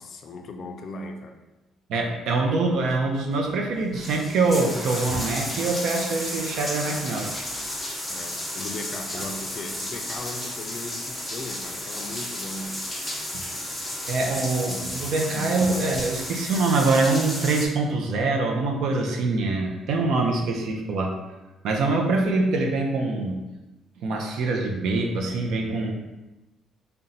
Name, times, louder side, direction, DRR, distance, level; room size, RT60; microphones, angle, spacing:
voice 1, 0.0-1.4 8.1-12.8, left 2 dB, 40° left, 4 dB, 0.4 m, -38 dB
voice 2, 1.9-7.5 9.1-9.2 13.3-13.4 14.1-21.1 21.6-23.4 24.0-25.9, right 3 dB, 65° right, 2 dB, 0.5 m, -24 dB
sound 1, 3.3-3.4 3.8-17.7, left 1 dB, 5° left, 0.7 m, -33 dB
4.1 x 2.2 x 3.8 m, 1.1 s
cardioid pair, 160°, 0 cm